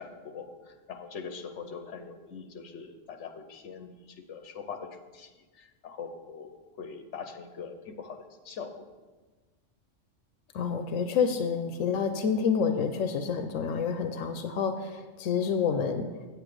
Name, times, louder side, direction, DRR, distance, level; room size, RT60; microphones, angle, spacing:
voice 1, 0.0-8.9, left 5 dB, 70° left, 7 dB, 1.1 m, -42 dB
voice 2, 10.5-16.1, left 6 dB, 90° left, 7 dB, 1.0 m, -28 dB
8.5 x 8.0 x 4.9 m, 1.3 s
omnidirectional pair, 1.3 m